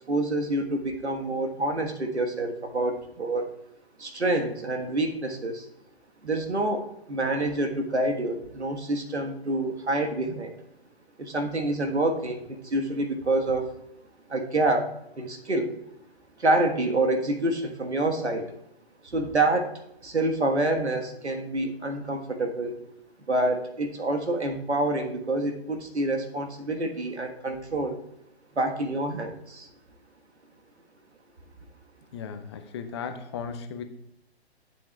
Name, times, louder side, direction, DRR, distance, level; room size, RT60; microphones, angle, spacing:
voice 1, 0.1-3.5 4.0-5.7 6.2-10.5 11.2-13.7 14.3-15.8 16.4-18.5 19.0-19.7 20.0-22.8 23.3-28.0 28.5-29.7, right 2 dB, 90° right, 5 dB, 1.4 m, -27 dB
voice 2, 32.1-33.8, left 6 dB, 25° left, 8 dB, 0.5 m, -36 dB
12.0 x 7.1 x 2.3 m, 0.77 s
figure-of-eight pair, 135°, 33 cm